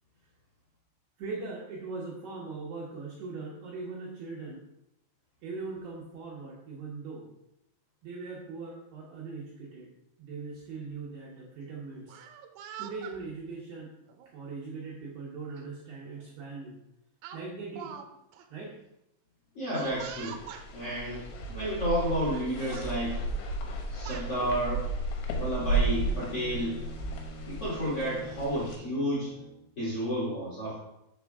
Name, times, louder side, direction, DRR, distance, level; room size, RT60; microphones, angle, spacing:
voice 1, 1.2-4.6 5.4-7.3 8.0-9.9 10.2-12.2 12.8-13.9 14.3-16.8 17.3-17.9 18.5-18.8, right 4 dB, 75° right, -4 dB, 2.5 m, -40 dB
Speech, 12.0-13.2 14.1-14.3 15.6-15.7 16.0-16.3 17.2-18.1 18.3-18.4 19.7-20.7 21.6-21.7 22.0-22.4 22.7-22.9 23.7-24.3, right 8 dB, 90° right, 3.3 m, -44 dB
voice 2, 19.6-20.4 20.7-21.2 21.5-23.2 23.9-24.8 25.3-26.8 27.5-29.3 29.8-30.8, equal, 45° left, -8 dB, 1.8 m, -31 dB
sound 1, 19.8-28.7, right 2 dB, 75° left, 3.3 m, -34 dB
Bowed string instrument, 25.5-29.7, right 2 dB, 5° right, 0.9 m, -47 dB
7.4 x 6.2 x 3.5 m, 0.85 s
omnidirectional pair, 6.0 m